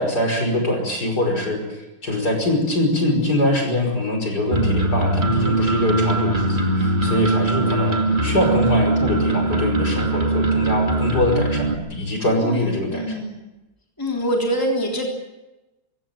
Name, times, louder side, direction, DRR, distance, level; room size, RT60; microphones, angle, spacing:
voice 1, 0.0-13.2, left 1 dB, 50° left, 3 dB, 6.0 m, -23 dB
sound 1, 4.5-11.7, right 2 dB, 25° right, 2.4 m, -21 dB
voice 2, 12.3-13.4 14.0-15.1, equal, 10° left, 0 dB, 3.6 m, -25 dB
23.5 x 16.5 x 9.1 m, 1.0 s
omnidirectional pair, 2.2 m